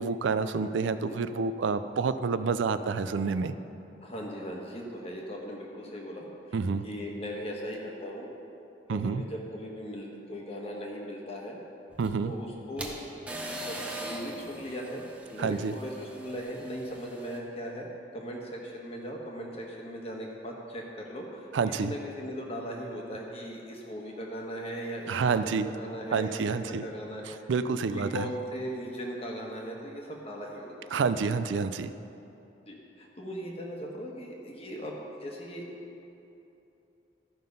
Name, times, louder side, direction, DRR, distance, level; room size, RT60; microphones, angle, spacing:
voice 1, 0.0-3.5 6.5-6.8 8.9-9.2 12.0-12.3 15.4-15.7 21.5-21.9 25.1-25.7 26.1-26.8 27.3-28.3 30.9-31.9, right 5 dB, 90° right, 11 dB, 0.4 m, -28 dB
voice 2, 4.0-6.6 6.8-8.3 8.9-11.6 12.2-13.0 13.6-17.9 18.1-27.4 27.9-31.0 32.7-34.9 35.2-35.6, equal, 35° left, -1 dB, 1.2 m, -39 dB
sound 1, 11.9-17.4, right 1 dB, 5° right, 0.7 m, -41 dB
13.0 x 5.7 x 5.3 m, 2.9 s
head